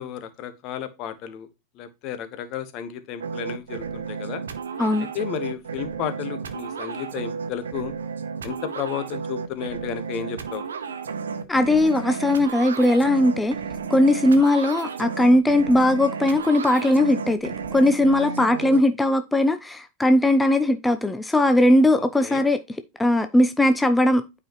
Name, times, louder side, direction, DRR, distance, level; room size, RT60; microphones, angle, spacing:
voice 1, 0.0-1.5 1.7-4.4 5.1-7.9 8.4-10.6 22.0-22.4, left 9 dB, 45° left, 1.3 m, -33 dB
sound 1, 3.2-18.8, right 6 dB, 80° right, 0.9 m, -32 dB
voice 2, 11.5-13.6 13.9-22.6 23.0-24.4, left 1 dB, 10° left, 0.6 m, -19 dB
9.0 x 5.0 x 3.0 m
hypercardioid pair, 95°, 0 cm